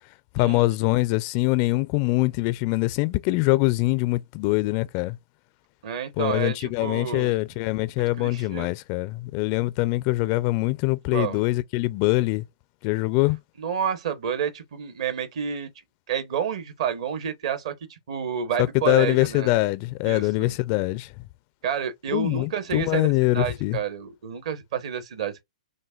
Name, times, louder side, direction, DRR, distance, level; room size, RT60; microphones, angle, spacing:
voice 1, 0.3-5.2 6.2-12.4 12.8-13.4 18.6-21.1 22.1-23.8, left 21 dB, 35° left, 0.4 m, -23 dB
voice 2, 5.8-7.4 8.2-8.7 11.1-11.4 13.6-15.7 16.1-19.5 20.0-20.5 21.6-23.1 23.3-25.4, right 8 dB, 55° right, 1.1 m, -29 dB
6.1 x 2.2 x 2.3 m
hypercardioid pair, 135°, 4 cm